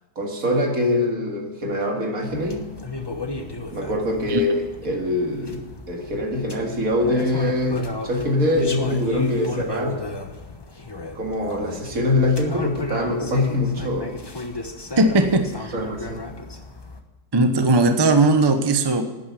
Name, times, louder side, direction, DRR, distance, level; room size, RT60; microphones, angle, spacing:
voice 1, 0.2-2.7 3.7-4.6 4.8-10.0 11.2-14.2 15.7-16.3, left 1 dB, 55° right, 1 dB, 2.5 m, -23 dB
sound 1, 2.3-17.0, left 2 dB, 20° left, 0.8 m, -34 dB
voice 2, 15.0-15.7 17.3-19.0, right 2 dB, 25° right, 7 dB, 0.6 m, -18 dB
12.0 x 9.4 x 8.3 m, 1.2 s
omnidirectional pair, 1.8 m